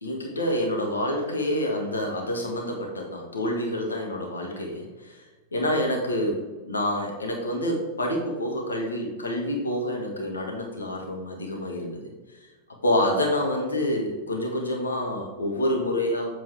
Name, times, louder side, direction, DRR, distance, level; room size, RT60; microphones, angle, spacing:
voice 1, 0.0-5.2 5.5-12.1 12.8-16.3, left 1 dB, 80° left, 1 dB, 1.4 m, -27 dB
7.5 x 4.1 x 4.5 m, 1.2 s
figure-of-eight pair, 90°, 0 cm